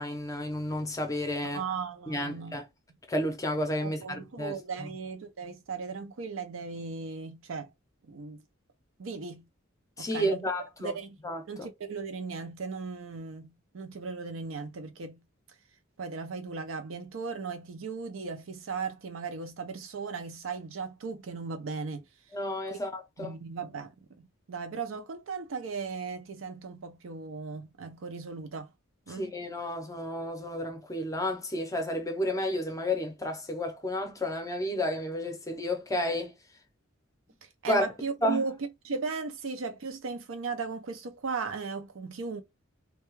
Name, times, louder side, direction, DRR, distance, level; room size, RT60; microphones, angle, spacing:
voice 1, 0.0-1.6 2.1-2.6 3.1-4.9 10.0-10.9 11.2-11.7 22.3-23.3 29.1-36.3 37.7-37.9 38.2-38.4, left 1 dB, 15° left, 0.6 m, -31 dB
voice 2, 1.5-2.6 3.8-7.7 8.1-8.4 9.0-9.5 10.0-10.4 10.8-11.1 11.5-15.2 16.0-22.1 22.7-22.8 23.2-28.7 29.1-29.3 37.6-42.4, right 5 dB, 65° right, 0.5 m, -37 dB
2.3 x 2.2 x 3.0 m
head